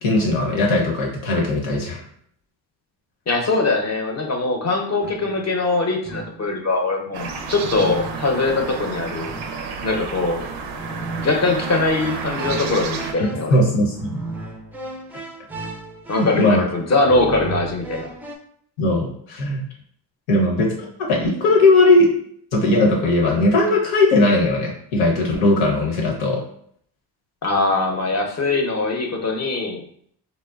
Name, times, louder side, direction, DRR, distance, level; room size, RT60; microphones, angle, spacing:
voice 1, 0.0-2.0 13.5-14.1 16.1-16.6 18.8-19.6 20.3-22.1 22.5-26.4, left 2 dB, 85° left, -1 dB, 0.9 m, -18 dB
voice 2, 3.3-9.3 9.8-10.5 11.2-13.6 16.1-18.1 27.4-29.8, left 3 dB, 35° left, 2 dB, 0.6 m, -22 dB
sound 1, 5.0-5.5 6.0-6.6 7.6-8.6 9.2-9.8 10.8-18.4, right 3 dB, 5° right, 0.3 m, -35 dB
sound 2, 7.1-13.1, right 5 dB, 80° right, 0.5 m, -31 dB
2.9 x 2.1 x 2.3 m, 0.64 s
supercardioid pair, 55°, 46 cm